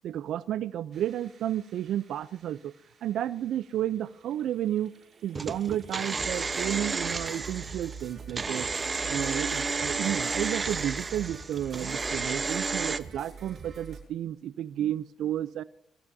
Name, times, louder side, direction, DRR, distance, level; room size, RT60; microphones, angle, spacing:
voice 1, 0.0-2.7 3.0-4.9 5.2-8.7 9.1-15.6, right 11 dB, 75° right, 17 dB, 0.6 m, -32 dB
sound 1, 0.9-14.0, right 5 dB, 50° right, 7.9 m, -46 dB
sound 2, 5.4-13.0, right 4 dB, 30° right, 1.0 m, -32 dB
23.5 x 15.5 x 2.8 m, 0.69 s
cardioid pair, 90°, 0 cm